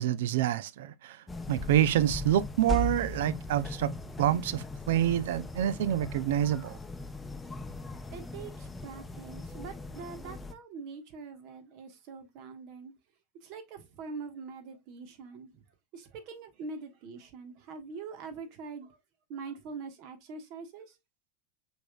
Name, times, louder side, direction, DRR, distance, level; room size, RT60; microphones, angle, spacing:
voice 1, 0.0-3.9 4.2-6.8, right 11 dB, 70° right, 0.4 m, -27 dB
sound 1, 1.3-10.5, left 1 dB, 15° left, 0.7 m, -38 dB
voice 2, 8.1-12.9 13.4-15.6 15.9-19.0 19.3-21.0, right 4 dB, 55° right, 1.3 m, -43 dB
6.0 x 3.5 x 2.3 m
hypercardioid pair, 95°, 0 cm